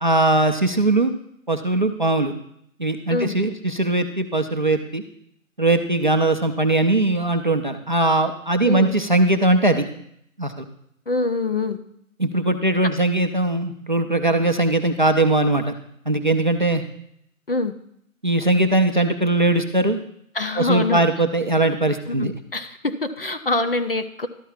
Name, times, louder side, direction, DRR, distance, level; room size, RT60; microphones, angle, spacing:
voice 1, 0.0-1.1 1.5-2.3 2.8-5.0 5.6-9.9 10.4-10.6 12.2-15.7 16.1-16.8 18.2-20.0 20.6-22.3, right 2 dB, 35° right, 7 dB, 0.4 m, -20 dB
voice 2, 11.1-11.8 17.5-17.7 20.3-21.0 22.1-24.3, left 2 dB, 45° left, 8 dB, 0.5 m, -24 dB
12.5 x 4.5 x 5.7 m, 0.71 s
hypercardioid pair, 165°, 42 cm